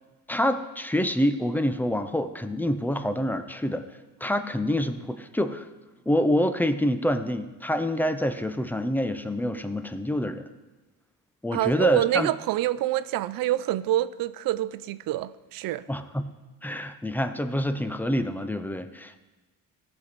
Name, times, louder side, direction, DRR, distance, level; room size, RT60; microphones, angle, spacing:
voice 1, 0.3-3.8 4.2-5.6 6.1-10.5 11.4-12.3 15.9-16.3 16.6-19.2, left 1 dB, 5° left, 0.5 m, -26 dB
voice 2, 11.5-15.8, right 14 dB, 75° right, 0.5 m, -26 dB
17.0 x 6.1 x 4.1 m
cardioid pair, 130°, 35 cm